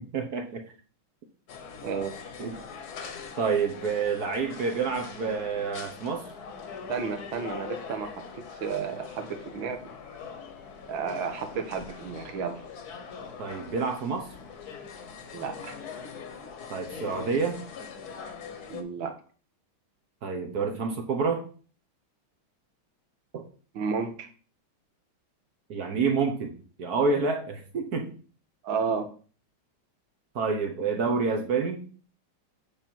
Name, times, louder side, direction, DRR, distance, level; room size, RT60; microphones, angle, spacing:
voice 1, 0.1-0.6 2.4-2.6 3.4-6.3 13.4-14.3 16.7-17.6 20.2-21.4 23.3-23.4 25.7-28.2 30.3-31.8, right 5 dB, 55° right, 5 dB, 1.4 m, -28 dB
sound 1, 1.5-18.8, left 6 dB, 55° left, 1.4 m, -42 dB
voice 2, 6.9-9.8 10.9-12.6 15.3-15.8 18.7-19.2 23.7-24.3 28.6-29.1, right 6 dB, 70° right, 7 dB, 1.9 m, -32 dB
8.8 x 5.5 x 4.5 m, 0.40 s
omnidirectional pair, 2.3 m